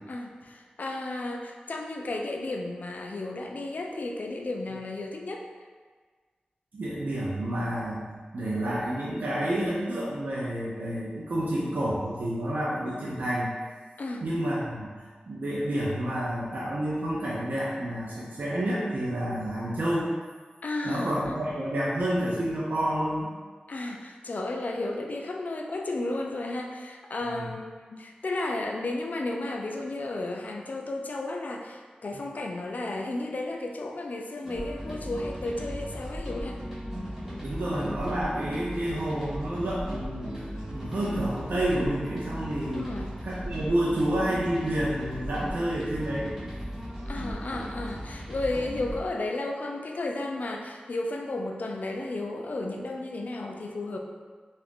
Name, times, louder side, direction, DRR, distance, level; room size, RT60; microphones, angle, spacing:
voice 1, 0.1-5.5 14.0-14.2 20.6-21.4 23.7-36.6 42.7-43.2 47.1-54.0, left 2 dB, 60° left, 2 dB, 0.3 m, -33 dB
voice 2, 6.7-8.1 8.3-13.5 14.2-20.1 20.8-23.3 27.3-27.5 37.4-40.3 40.7-42.9 43.2-46.3, right 1 dB, 70° right, -7 dB, 0.5 m, -29 dB
sound 1, 34.4-49.0, equal, 15° right, 1.1 m, -37 dB
2.7 x 2.4 x 3.5 m, 1.5 s
wide cardioid pair, 95°, 3 cm